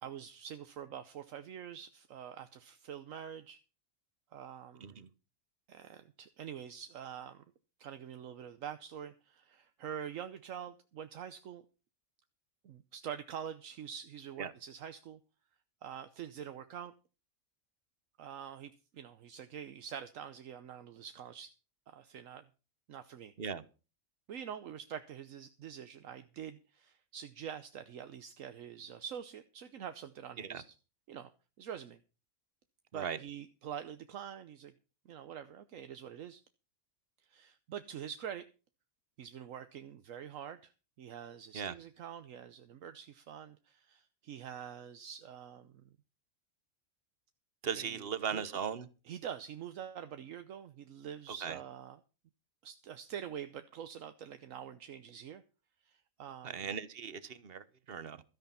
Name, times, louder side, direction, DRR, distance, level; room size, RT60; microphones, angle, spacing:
voice 1, 0.0-3.6 4.3-5.0 5.7-7.4 7.8-11.6 12.6-15.2 15.8-16.9 18.2-21.5 21.9-22.4 22.9-23.3 24.3-30.6 31.1-31.3 31.6-32.0 32.9-34.7 35.1-36.4 37.3-38.5 39.2-40.7 41.0-45.7 47.7-48.0 48.3-48.4 49.1-52.0 52.6-55.4 55.9-56.6, right 9 dB, 75° right, 1.2 m, -45 dB
voice 2, 47.6-48.9 51.3-51.6 56.4-58.2, right 7 dB, 50° right, 1.1 m, -38 dB
13.5 x 9.3 x 5.7 m
omnidirectional pair, 1.4 m